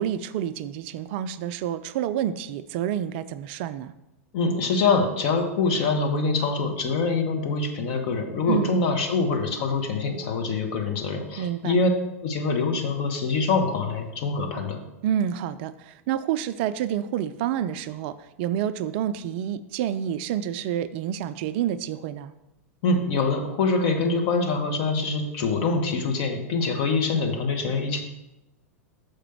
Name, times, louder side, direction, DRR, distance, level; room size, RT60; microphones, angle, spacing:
voice 1, 0.0-3.9 8.5-8.7 11.4-11.8 15.0-22.3, right 10 dB, 50° right, 14 dB, 0.3 m, -28 dB
voice 2, 4.3-11.9 12.2-14.8 22.8-28.0, left 4 dB, 50° left, 4 dB, 1.1 m, -24 dB
6.6 x 5.0 x 4.4 m, 0.93 s
figure-of-eight pair, 95°, 8 cm